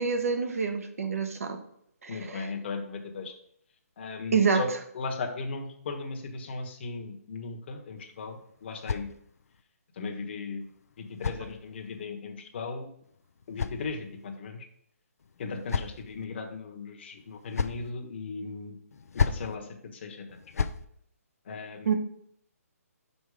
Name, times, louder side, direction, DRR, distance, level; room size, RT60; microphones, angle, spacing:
voice 1, 0.0-1.6 2.0-2.5 4.3-4.6 21.9-22.0, right 5 dB, 65° right, 6 dB, 1.2 m, -27 dB
voice 2, 2.1-3.3 4.0-4.7 4.9-9.1 9.9-10.7 11.0-12.9 13.5-14.7 15.4-18.7 19.1-20.3 21.4-21.9, left 4 dB, 45° left, 4 dB, 1.2 m, -37 dB
sound 1, 8.0-9.6 10.6-12.0 13.0-14.4 15.2-16.2 17.2-17.9 18.9-19.5 20.3-20.8, left 5 dB, 70° left, 0.5 m, -34 dB
6.1 x 5.4 x 4.9 m, 0.70 s
hypercardioid pair, 160°, 8 cm